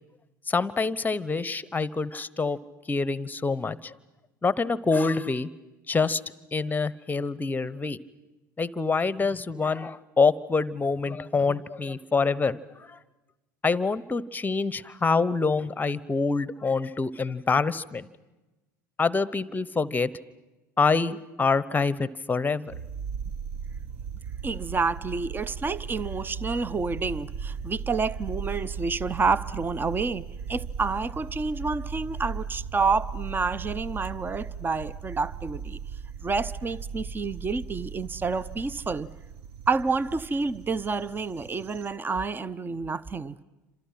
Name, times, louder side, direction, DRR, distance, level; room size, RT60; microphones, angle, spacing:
voice 1, 0.5-2.6 2.9-3.9 4.4-5.5 5.9-6.2 6.5-8.0 8.6-12.6 12.9-13.0 13.6-18.1 19.0-20.1 20.8-22.7, left 4 dB, 15° left, 1.0 m, -26 dB
sound 1, 22.7-41.9, right 6 dB, 55° right, 1.3 m, -37 dB
voice 2, 24.4-35.8 36.2-39.1 39.7-43.4, right 4 dB, 20° right, 0.8 m, -29 dB
29.5 x 27.0 x 5.9 m
hypercardioid pair, 75°, 11 cm